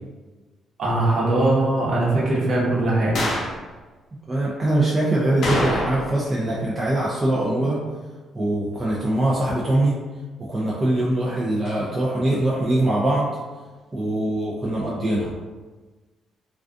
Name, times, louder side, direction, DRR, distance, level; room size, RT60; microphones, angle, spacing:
voice 1, 0.8-3.2, right 2 dB, 55° right, -6 dB, 0.9 m, -20 dB
sound 1, 3.2-3.6 5.4-6.3 6.5-6.6 11.7-11.8, left 1 dB, 65° left, 0.6 m, -25 dB
voice 2, 4.3-7.8 8.3-9.9 10.5-13.3 13.9-15.4, right 1 dB, 25° right, -6 dB, 0.4 m, -22 dB
2.3 x 2.3 x 2.5 m, 1.3 s
cardioid pair, 90°, 0 cm